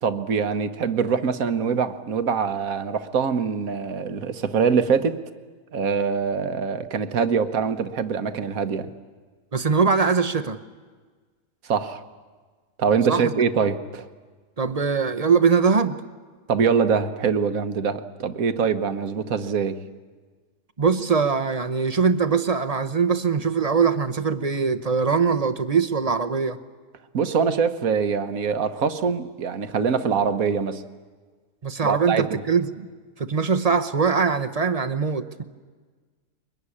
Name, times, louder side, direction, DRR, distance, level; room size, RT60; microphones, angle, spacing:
voice 1, 0.0-5.2 5.7-8.9 11.6-12.0 12.8-14.1 16.5-19.8 27.1-30.8 31.8-32.4, right 6 dB, 70° right, 10 dB, 1.5 m, -24 dB
voice 2, 9.5-10.6 13.1-13.3 14.6-16.0 20.8-26.6 31.6-32.9 33.2-35.4, right 5 dB, 30° right, 10 dB, 0.8 m, -22 dB
23.0 x 21.5 x 9.9 m, 1.4 s
omnidirectional pair, 1.6 m